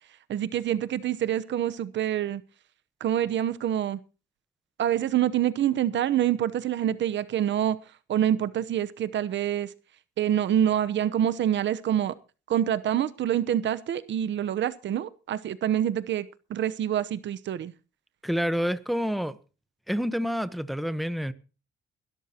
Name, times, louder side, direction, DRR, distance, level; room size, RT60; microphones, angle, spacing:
voice 1, 0.3-2.4 3.0-4.0 4.8-7.8 8.1-9.7 10.2-12.1 12.5-17.7, right 10 dB, 65° right, 1.0 m, -26 dB
voice 2, 18.2-19.4 19.9-21.3, equal, ahead, 1.0 m, -28 dB
22.0 x 13.0 x 2.9 m
cardioid pair, 90°, 20 cm